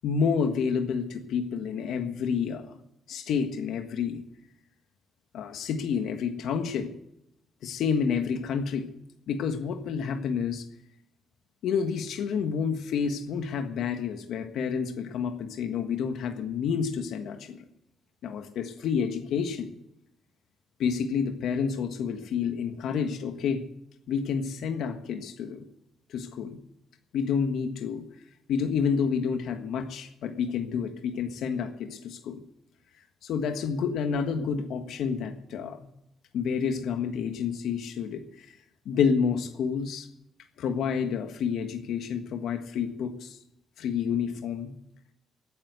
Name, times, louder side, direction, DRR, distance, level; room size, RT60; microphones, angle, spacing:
voice 1, 0.0-2.8 3.1-4.2 5.3-6.9 7.6-8.9 9.3-10.7 11.6-17.6 18.2-19.7 20.8-23.6 24.1-25.6 26.1-26.6 27.1-28.0 28.5-32.4 33.2-35.8 36.3-38.5 38.8-40.1 40.6-43.4 43.8-44.7, left 6 dB, 75° left, 7 dB, 1.5 m, -29 dB
16.0 x 9.7 x 8.2 m, 0.81 s
cardioid pair, 90°, 0 cm